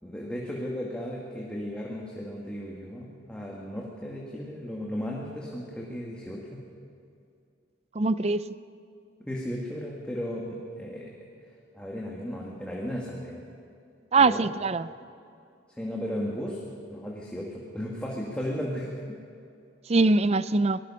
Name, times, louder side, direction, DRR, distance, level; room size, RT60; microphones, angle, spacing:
voice 1, 0.0-6.6 9.2-11.1 11.7-13.4 14.2-14.5 15.8-16.6 16.9-19.2, equal, 5° left, -3 dB, 2.0 m, -35 dB
voice 2, 7.9-8.5 14.1-14.9 19.9-20.8, right 3 dB, 35° right, 15 dB, 0.5 m, -22 dB
24.0 x 19.0 x 5.7 m, 2.5 s
head